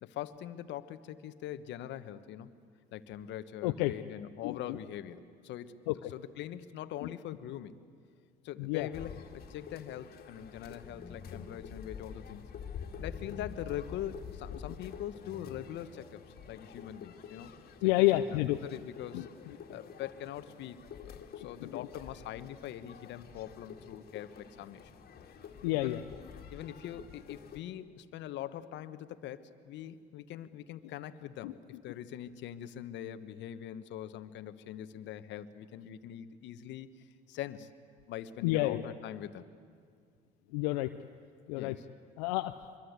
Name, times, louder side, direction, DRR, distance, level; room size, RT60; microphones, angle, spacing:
voice 1, 0.0-2.5 2.9-7.7 8.4-12.5 13.0-17.5 18.1-19.3 19.7-24.9 25.7-26.0 26.5-36.9 37.3-37.7 38.1-39.4 41.6-41.9, left 11 dB, 65° left, 12 dB, 1.2 m, -43 dB
sound 1, 8.9-27.6, left 6 dB, 50° left, 2.3 m, -48 dB
voice 2, 17.8-18.6 19.1-19.2 21.6-21.7 25.6-26.0 31.4-31.5 38.4-38.8 40.5-40.9 41.5-41.7 42.2-42.5, left 17 dB, 85° left, 7 dB, 0.7 m, -29 dB
24.5 x 23.0 x 8.2 m, 2.2 s
supercardioid pair, 70°, 20 cm